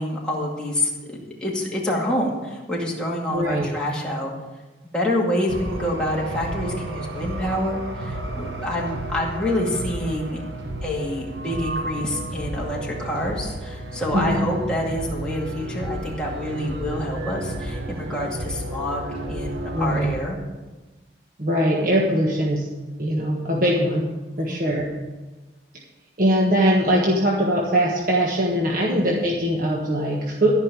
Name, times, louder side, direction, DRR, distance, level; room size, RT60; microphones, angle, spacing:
voice 1, 0.0-4.3 4.9-10.4 10.8-19.0 19.3-20.4 24.4-24.6 28.9-29.1, left 1 dB, 5° left, -4 dB, 2.3 m, -27 dB
voice 2, 3.3-3.7 14.1-14.5 19.7-20.1 21.4-22.7 23.0-24.0 24.4-24.9 26.2-30.5, equal, 50° right, -2 dB, 1.5 m, -21 dB
sound 1, 5.5-20.2, right 1 dB, 85° right, 1.3 m, -32 dB
14.0 x 5.5 x 8.6 m, 1.2 s
head